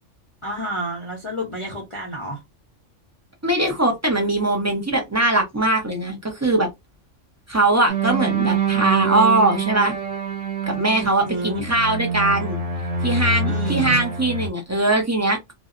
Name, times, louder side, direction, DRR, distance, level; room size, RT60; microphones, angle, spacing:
voice 1, 0.4-2.4 11.0-11.7 13.4-14.0, equal, 35° left, 0.6 m, -30 dB
voice 2, 3.4-6.7 7.5-9.9 10.7-12.6 13.0-15.5, right 2 dB, 25° right, 0.3 m, -21 dB
sound 1, 7.9-14.5, right 5 dB, 85° right, 1.2 m, -25 dB
2.6 x 2.0 x 2.4 m
omnidirectional pair, 1.3 m